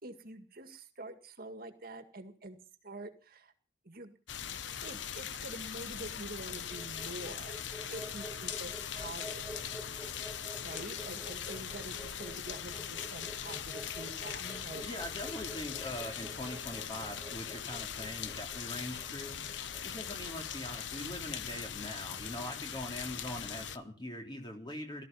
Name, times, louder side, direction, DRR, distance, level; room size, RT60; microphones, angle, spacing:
voice 1, 0.0-2.6 2.8-3.5 3.8-4.2 4.8-7.5 7.9-10.0 10.6-15.1 19.9-20.1, right 2 dB, 50° right, 8 dB, 2.1 m, -46 dB
Falling Rain, 4.3-23.8, left 8 dB, 80° left, 0.9 m, -41 dB
sound 1, 6.5-20.6, equal, 10° left, 3.5 m, -49 dB
voice 2, 14.4-19.4 19.8-25.0, left 1 dB, 25° left, 3 dB, 3.5 m, -42 dB
18.0 x 13.5 x 5.6 m, 0.40 s
head